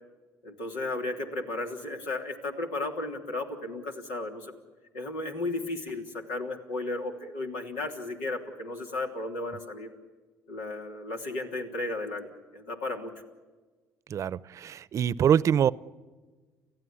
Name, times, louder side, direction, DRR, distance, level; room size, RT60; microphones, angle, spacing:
voice 1, 0.4-4.5 4.9-9.9 10.5-12.3 12.5-13.1, left 2 dB, 85° left, 2 dB, 3.3 m, -34 dB
voice 2, 14.1-15.7, right 9 dB, 50° right, 19 dB, 0.7 m, -24 dB
30.0 x 15.0 x 9.8 m, 1.3 s
supercardioid pair, 65°, 7 cm